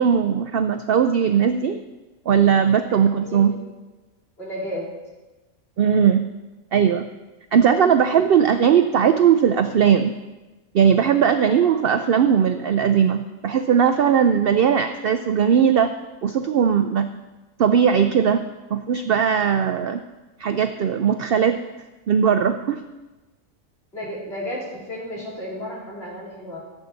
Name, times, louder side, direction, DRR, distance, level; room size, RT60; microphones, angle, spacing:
voice 1, 0.0-1.8 2.3-3.5 5.8-6.2 6.7-7.1 7.5-10.1 10.7-15.9 16.2-17.1 17.6-18.4 18.7-20.0 20.4-21.6 22.1-22.8, right 7 dB, 70° right, 9 dB, 0.5 m, -18 dB
voice 2, 3.2-3.6 4.4-4.9 11.5-11.7 23.9-26.6, equal, 45° left, -6 dB, 3.6 m, -33 dB
15.0 x 7.9 x 4.0 m, 1.1 s
omnidirectional pair, 1.5 m